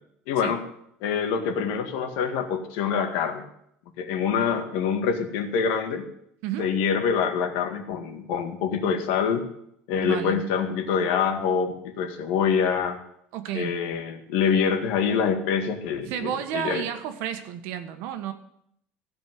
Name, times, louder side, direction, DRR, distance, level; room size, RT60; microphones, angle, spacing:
voice 1, 0.3-0.6 1.0-3.4 4.0-6.1 6.6-9.5 9.9-13.0 13.5-16.8, left 6 dB, 80° left, 5 dB, 2.0 m, -25 dB
voice 2, 6.4-6.7 10.0-10.4 13.3-13.8 16.0-18.3, right 10 dB, 70° right, 8 dB, 1.4 m, -31 dB
15.0 x 5.3 x 9.4 m, 0.73 s
cardioid pair, 165°, 4 cm